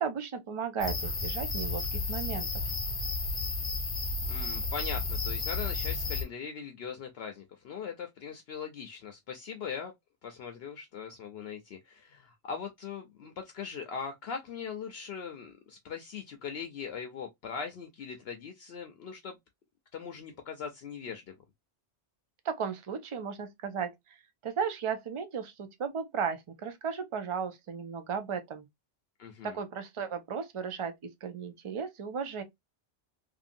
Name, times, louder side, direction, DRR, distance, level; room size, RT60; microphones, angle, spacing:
voice 1, 0.0-2.6 22.4-24.2 24.4-28.7 29.4-30.9 31.2-32.4, right 6 dB, 50° right, 0.4 m, -35 dB
sound 1, 0.8-6.2, left 3 dB, 30° left, 0.8 m, -32 dB
voice 2, 4.3-9.9 10.2-19.4 19.9-21.4 29.2-29.6, left 6 dB, 65° left, 0.7 m, -40 dB
2.7 x 2.6 x 2.5 m
omnidirectional pair, 1.2 m